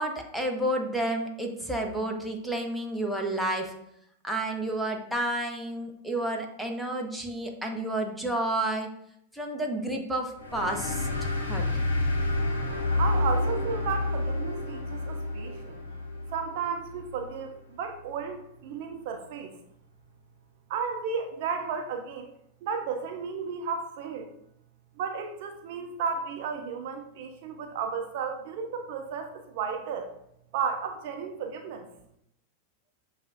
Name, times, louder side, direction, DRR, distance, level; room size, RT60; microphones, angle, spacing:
voice 1, 0.0-3.7 4.2-8.9 9.3-11.7, right 1 dB, ahead, 0 dB, 0.7 m, -30 dB
sound 1, 10.4-17.5, left 2 dB, 75° left, 0.8 m, -29 dB
voice 2, 13.0-15.8 16.3-19.5 20.7-22.3 22.6-24.3 25.0-30.1 30.5-31.9, right 6 dB, 50° right, 4 dB, 0.5 m, -33 dB
6.6 x 2.4 x 2.6 m, 0.74 s
figure-of-eight pair, 90°, 0 cm